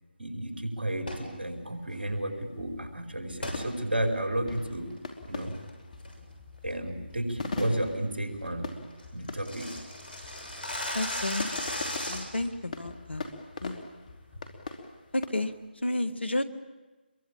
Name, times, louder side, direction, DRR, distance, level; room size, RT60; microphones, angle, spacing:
voice 1, 0.2-4.9 5.3-5.5 6.6-8.7 9.1-9.7, right 1 dB, 70° right, 4 dB, 5.2 m, -32 dB
sound 1, 1.0-1.3 3.4-3.6 4.1-4.2 4.7-5.0 5.4-5.7 6.0-6.3 6.7-6.8 7.2-7.4 7.8-7.9 8.2-8.3 8.5-8.6 8.8-12.5, left 1 dB, 60° left, 6.8 m, -36 dB
sound 2, 1.9-15.3, left 3 dB, 45° left, 2.9 m, -42 dB
voice 2, 10.9-11.5 12.1-13.3 13.6-13.8 15.1-16.4, left 1 dB, 80° left, 11 dB, 1.9 m, -31 dB
26.0 x 23.0 x 8.8 m, 1.2 s
figure-of-eight pair, 155°, 6 cm